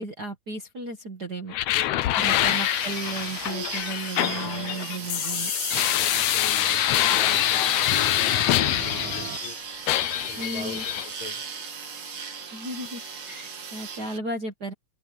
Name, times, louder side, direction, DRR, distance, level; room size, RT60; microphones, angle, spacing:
voice 1, 0.0-1.6 2.2-5.5 10.4-10.8 12.5-13.0 13.3-14.7, right 2 dB, 35° right, 1.8 m, -34 dB
sound 1, 1.5-9.5 9.9-11.1, left 14 dB, 90° left, 1.4 m, -25 dB
voice 2, 1.7-2.5 4.3-4.7 5.5-5.6 5.9-9.6 10.2-11.4, left 5 dB, 60° left, 4.8 m, -42 dB
sound 2, 2.2-14.2, right 5 dB, 60° right, 4.6 m, -37 dB
sound 3, 6.8-9.4, right 18 dB, 85° right, 2.3 m, -41 dB
omnidirectional pair, 3.8 m